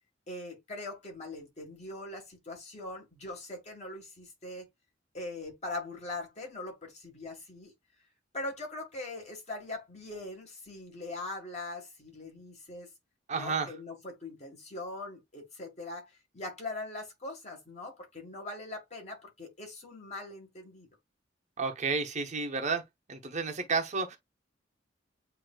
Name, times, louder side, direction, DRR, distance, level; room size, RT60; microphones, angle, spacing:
voice 1, 0.3-4.7 5.1-7.7 8.3-12.9 13.3-20.9, left 2 dB, 35° left, 1.8 m, -41 dB
voice 2, 13.3-13.7 21.6-22.8 23.1-24.2, right 4 dB, 40° right, 0.9 m, -31 dB
7.9 x 2.8 x 2.3 m
head